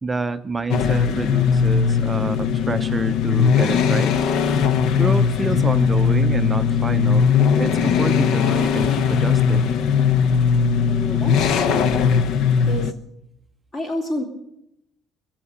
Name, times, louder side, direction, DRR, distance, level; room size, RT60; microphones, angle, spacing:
voice 1, 0.0-4.2 5.0-9.8, right 3 dB, 15° right, 10 dB, 0.5 m, -28 dB
sound 1, 0.7-12.9, left 6 dB, 65° left, 0.6 m, -19 dB
voice 2, 10.8-11.9 12.7-12.9 13.7-14.2, equal, 30° left, 3 dB, 3.0 m, -29 dB
21.5 x 7.2 x 8.4 m, 0.80 s
cardioid pair, 160°, 0 cm